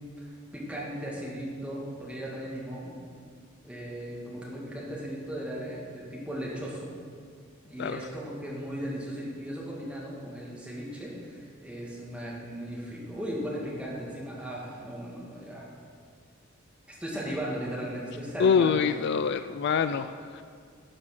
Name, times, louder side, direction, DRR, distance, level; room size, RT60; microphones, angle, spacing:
voice 1, 0.2-2.9 3.6-6.9 7.6-15.7 16.9-18.8, equal, 5° right, -5 dB, 2.1 m, -37 dB
voice 2, 18.4-20.4, left 6 dB, 55° left, 12 dB, 0.3 m, -25 dB
11.5 x 6.2 x 6.0 m, 2.1 s
head